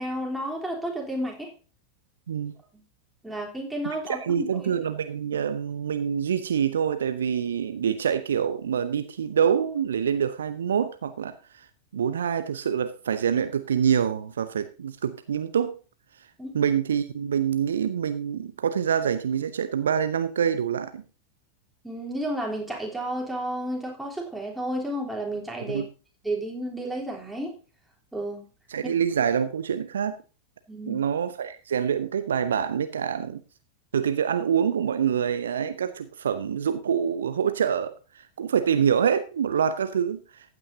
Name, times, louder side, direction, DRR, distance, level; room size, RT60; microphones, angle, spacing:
voice 1, 0.0-1.5 2.7-2.8 3.2-4.7 16.4-16.5 21.8-25.8 26.2-27.5 28.1-28.5 28.8-29.0 30.7-31.0, right 1 dB, 5° right, 3.6 m, -32 dB
voice 2, 3.8-11.3 11.9-15.8 16.5-21.0 25.7-25.9 28.7-30.2 30.9-33.4 33.9-37.9 38.4-40.2, right 8 dB, 65° right, 0.8 m, -26 dB
15.0 x 8.9 x 2.8 m
figure-of-eight pair, 90°, 0 cm